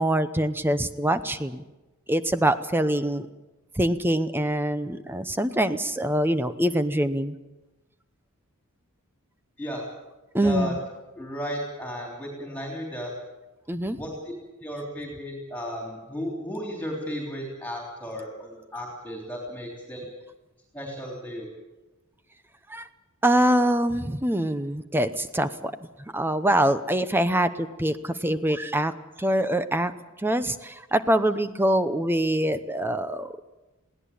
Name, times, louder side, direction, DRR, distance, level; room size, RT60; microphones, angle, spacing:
voice 1, 0.0-1.6 2.1-3.3 3.8-7.4 10.3-10.7 13.7-14.0 22.7-22.9 23.2-25.7 26.1-28.9 29.2-29.9 30.2-33.3, right 1 dB, 10° right, 11 dB, 0.7 m, -24 dB
voice 2, 10.4-10.7 11.2-13.1 14.0-14.3 14.6-20.1 20.7-21.5, equal, 5° left, 0 dB, 3.4 m, -34 dB
21.5 x 17.0 x 8.6 m, 1.1 s
head